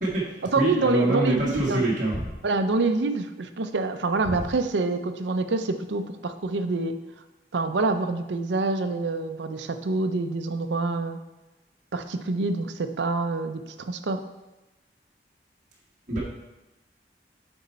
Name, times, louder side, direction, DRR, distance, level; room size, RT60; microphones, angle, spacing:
voice 1, 0.0-2.3 4.2-4.5 16.1-16.2, right 1 dB, 45° right, -7 dB, 1.6 m, -26 dB
voice 2, 0.5-1.8 2.4-7.0 7.5-11.2 11.9-14.2, right 3 dB, 85° right, 8 dB, 0.5 m, -26 dB
7.8 x 4.5 x 4.2 m, 1.1 s
head